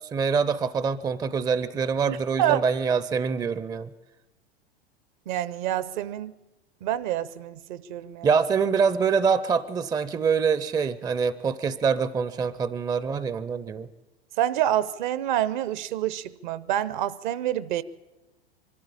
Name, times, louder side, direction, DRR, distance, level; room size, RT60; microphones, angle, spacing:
voice 1, 0.1-3.9 8.2-13.9, right 6 dB, 10° right, 16 dB, 0.6 m, -25 dB
voice 2, 2.0-2.6 5.3-6.3 6.8-8.3 14.4-17.8, right 12 dB, 50° right, 17 dB, 0.8 m, -27 dB
23.5 x 13.0 x 8.6 m, 1.1 s
figure-of-eight pair, 90°, 31 cm